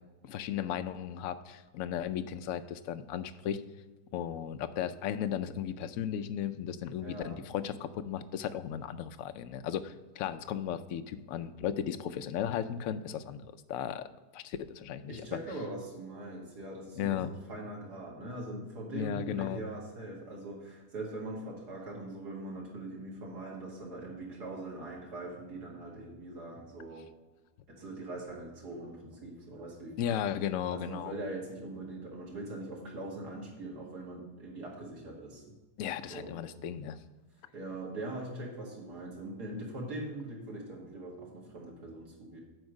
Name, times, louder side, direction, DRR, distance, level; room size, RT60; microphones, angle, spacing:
voice 1, 0.2-3.6 4.1-14.1 14.3-15.4 17.0-17.3 18.9-19.6 30.0-31.1 35.8-37.0, left 9 dB, 70° left, 10 dB, 0.9 m, -35 dB
voice 2, 7.0-7.4 15.1-27.1 27.7-30.2 30.7-35.5 36.0-36.3 37.5-42.4, right 2 dB, 90° right, -3 dB, 2.6 m, -42 dB
8.0 x 4.8 x 6.3 m, 1.2 s
omnidirectional pair, 1.7 m